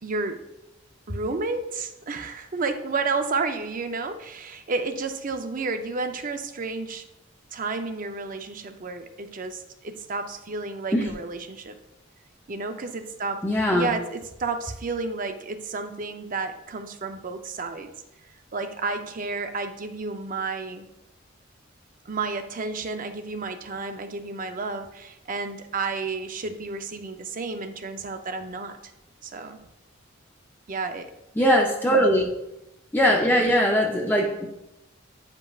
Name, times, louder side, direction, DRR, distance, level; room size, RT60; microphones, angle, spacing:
voice 1, 0.0-0.4 1.1-7.0 7.5-11.8 12.5-17.9 18.5-20.9 22.1-28.9 29.2-29.6 30.7-31.1 31.9-32.1, right 3 dB, 45° right, 8 dB, 0.6 m, -31 dB
voice 2, 13.4-13.9 31.4-32.3 32.9-34.5, equal, 10° left, -1 dB, 0.6 m, -21 dB
9.4 x 5.1 x 2.4 m, 0.91 s
head